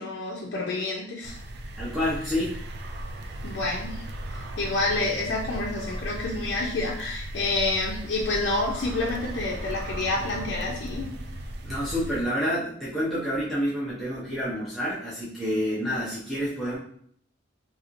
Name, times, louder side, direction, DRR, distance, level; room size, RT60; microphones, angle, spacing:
voice 1, 0.0-1.4 3.4-4.0 4.3-11.1, left 2 dB, 65° left, -3 dB, 0.5 m, -28 dB
sound 1, 1.2-12.2, right 1 dB, 60° right, 0.4 m, -36 dB
voice 2, 1.8-2.6 11.6-16.8, equal, ahead, -10 dB, 0.6 m, -28 dB
3.0 x 2.8 x 2.5 m, 0.64 s
head